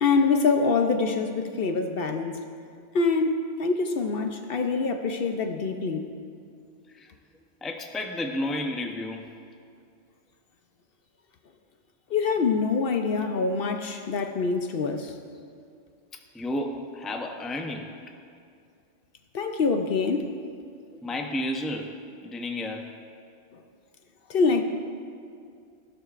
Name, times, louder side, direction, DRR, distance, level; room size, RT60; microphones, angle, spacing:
voice 1, 0.0-2.4 2.9-6.1 12.1-15.1 19.3-20.3 24.3-24.6, left 4 dB, 60° left, 6 dB, 0.8 m, -25 dB
voice 2, 7.6-9.3 13.0-13.2 16.1-17.9 20.9-21.9 22.2-22.9, left 1 dB, ahead, 3 dB, 0.5 m, -32 dB
16.0 x 12.0 x 2.5 m, 2.3 s
omnidirectional pair, 1.2 m